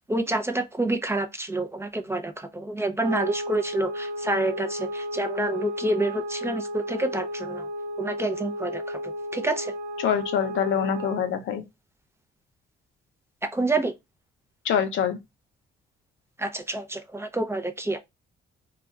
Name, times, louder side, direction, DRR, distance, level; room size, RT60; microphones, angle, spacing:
voice 1, 0.1-7.7 8.0-9.7 13.4-13.9 16.4-18.0, right 2 dB, 15° right, 0.5 m, -28 dB
sound 1, 3.0-11.4, equal, 70° right, 0.7 m, -33 dB
voice 2, 10.0-11.6 14.6-15.2, left 8 dB, 75° left, 0.7 m, -25 dB
2.4 x 2.3 x 3.9 m
cardioid pair, 90°, 20 cm